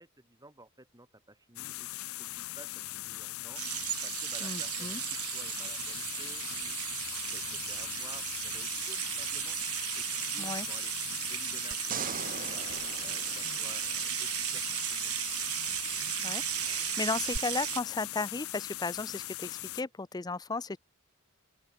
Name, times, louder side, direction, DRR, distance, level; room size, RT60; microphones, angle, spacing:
voice 1, 0.0-1.9 2.2-7.0 7.3-9.6 9.9-15.4, right 1 dB, 15° right, 6.3 m, -55 dB
sound 1, 1.6-19.8, left 17 dB, 70° left, 0.5 m, -40 dB
sound 2, 3.6-17.8, right 15 dB, 85° right, 1.9 m, -35 dB
voice 2, 4.4-5.0 10.4-10.7 16.2-20.8, left 3 dB, 20° left, 0.5 m, -35 dB
sound 3, 11.7-14.2 17.3-17.4, right 6 dB, 40° right, 1.0 m, -40 dB
open air
head